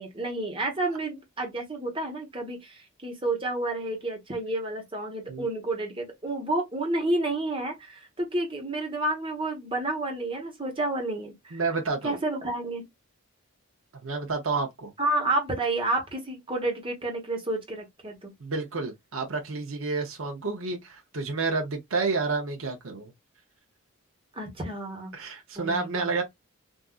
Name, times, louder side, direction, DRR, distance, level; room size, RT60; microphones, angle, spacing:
voice 1, 0.0-11.6 12.0-12.9 15.0-18.3 24.3-25.1 25.5-26.1, right 2 dB, 25° right, 1.1 m, -30 dB
voice 2, 11.5-12.2 14.0-14.9 18.4-23.1 25.1-26.2, right 4 dB, 60° right, 0.7 m, -30 dB
3.6 x 2.6 x 2.3 m
head